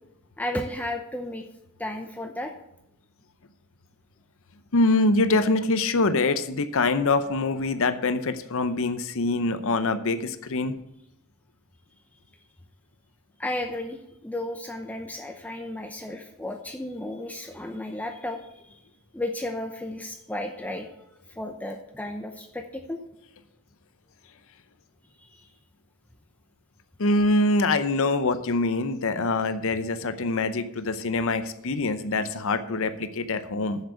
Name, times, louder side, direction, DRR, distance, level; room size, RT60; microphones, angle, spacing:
voice 1, 0.4-1.5 1.8-2.5 13.4-18.8 19.1-20.9 21.3-23.0 25.2-25.5, left 1 dB, 5° left, 4 dB, 0.7 m, -33 dB
voice 2, 4.7-10.8 27.0-33.8, left 2 dB, 65° left, 11 dB, 0.7 m, -24 dB
7.5 x 7.4 x 8.3 m, 0.81 s
head